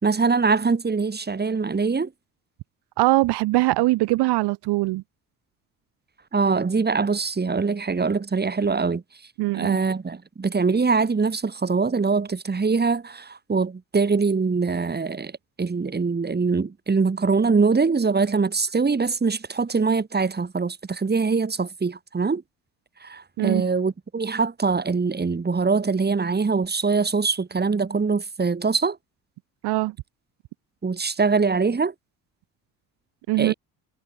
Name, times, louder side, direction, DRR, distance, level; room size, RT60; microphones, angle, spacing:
voice 1, 0.0-2.1 6.3-9.0 9.5-15.3 15.6-22.4 23.0-29.0 30.8-31.9 33.4-33.5, right 4 dB, 25° right, 2.5 m, -23 dB
voice 2, 3.0-5.0 9.4-9.8 23.4-23.6 29.6-29.9 33.3-33.5, right 19 dB, 75° right, 1.6 m, -22 dB
supercardioid pair, 70°, 40 cm